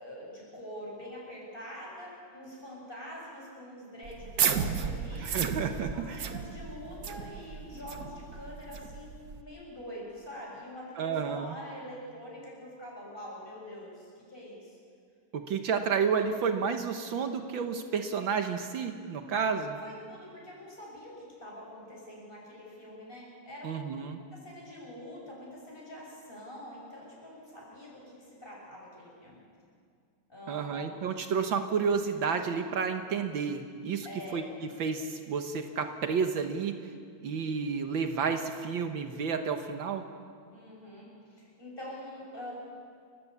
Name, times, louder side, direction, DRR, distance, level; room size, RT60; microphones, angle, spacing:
voice 1, 0.0-5.3 5.8-14.8 19.8-23.9 24.3-29.4 30.3-31.0 34.0-34.5 40.5-42.5, left 1 dB, 25° left, -4 dB, 8.2 m, -45 dB
sound 1, 4.0-9.4, right 7 dB, 50° right, 1.4 m, -33 dB
voice 2, 5.2-6.3 11.0-11.6 15.3-19.8 23.6-24.2 30.5-34.1 34.3-36.9 37.2-40.1, right 6 dB, 70° right, 6 dB, 1.8 m, -31 dB
29.5 x 15.5 x 8.5 m, 2.2 s
omnidirectional pair, 2.2 m